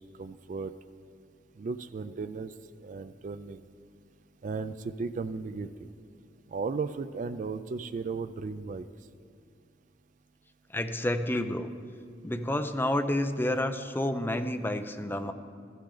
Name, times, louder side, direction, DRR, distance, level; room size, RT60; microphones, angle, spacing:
voice 1, 0.2-0.7 1.6-2.5 2.8-3.6 4.4-5.9 6.5-8.9, right 4 dB, 45° right, 10 dB, 0.3 m, -35 dB
voice 2, 10.7-11.7 12.2-15.3, left 1 dB, 10° left, 8 dB, 0.5 m, -29 dB
15.0 x 11.5 x 3.9 m, 2.4 s
head